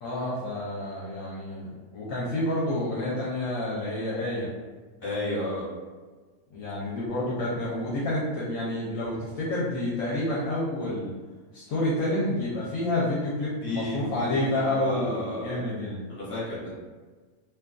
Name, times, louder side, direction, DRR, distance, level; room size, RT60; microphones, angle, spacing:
voice 1, 0.0-4.5 6.5-11.1 11.5-16.0, left 1 dB, 70° left, -7 dB, 1.0 m, -29 dB
voice 2, 5.0-5.7 13.6-15.7 16.1-16.7, left 2 dB, 25° left, -8 dB, 1.3 m, -32 dB
2.8 x 2.4 x 2.2 m, 1.4 s
omnidirectional pair, 1.5 m